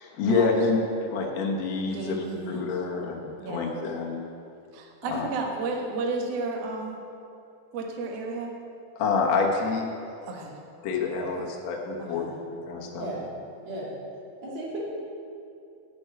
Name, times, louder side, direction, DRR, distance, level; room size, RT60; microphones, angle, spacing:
voice 1, 0.0-4.3 5.0-5.3 8.9-9.9 10.8-13.1, left 4 dB, 80° left, -1 dB, 1.5 m, -27 dB
voice 2, 1.9-2.7 3.4-3.8 4.7-7.0 7.7-8.5 10.2-10.5 12.0-12.3, right 3 dB, 85° right, 0 dB, 1.4 m, -33 dB
voice 3, 14.4-14.8, right 2 dB, 45° right, -5 dB, 3.1 m, -35 dB
11.5 x 6.3 x 9.1 m, 2.6 s
omnidirectional pair, 5.1 m